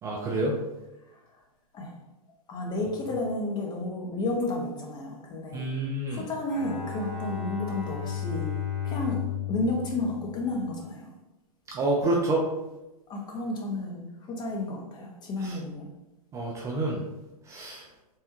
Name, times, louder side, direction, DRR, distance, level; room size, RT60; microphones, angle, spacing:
voice 1, 0.0-0.6 5.5-6.3 11.7-12.4 15.4-15.6 16.3-17.0 17.4-17.9, right 2 dB, 15° right, -3 dB, 0.3 m, -28 dB
voice 2, 2.5-5.7 6.1-8.5 8.8-9.2 9.5-11.1 13.1-15.9, left 2 dB, 20° left, 0 dB, 0.6 m, -32 dB
Bowed string instrument, 6.5-10.9, left 9 dB, 40° left, 1.1 m, -34 dB
3.4 x 2.2 x 2.8 m, 1.0 s
hypercardioid pair, 110°, 19 cm